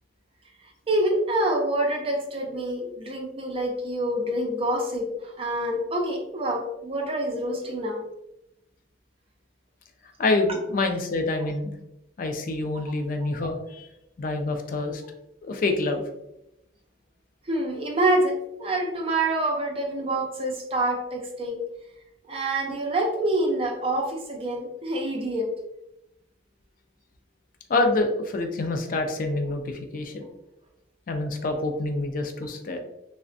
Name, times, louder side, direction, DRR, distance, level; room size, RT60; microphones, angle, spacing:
voice 1, 0.9-8.0 13.2-13.3 17.5-21.6 22.3-25.5, right 1 dB, 30° right, 1 dB, 0.5 m, -26 dB
voice 2, 10.2-11.7 12.2-13.9 14.2-15.0 15.4-16.0 27.7-30.3 31.1-32.8, left 2 dB, 50° left, 5 dB, 0.4 m, -26 dB
3.3 x 2.1 x 2.5 m, 0.86 s
head